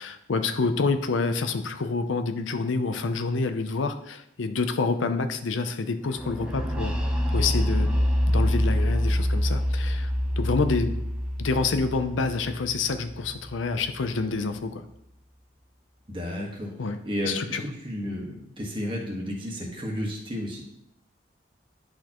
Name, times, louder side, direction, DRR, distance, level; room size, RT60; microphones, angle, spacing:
voice 1, 0.0-6.9 7.3-8.0 8.3-10.1 10.4-10.9 11.4-14.8 16.8-17.0 17.2-17.6, left 4 dB, 90° left, 8 dB, 0.6 m, -27 dB
sound 1, 6.2-13.9, equal, 5° right, 0.7 m, -26 dB
voice 2, 16.1-16.7 17.0-20.6, equal, 25° right, -1 dB, 1.4 m, -32 dB
10.5 x 4.3 x 3.0 m, 0.77 s
head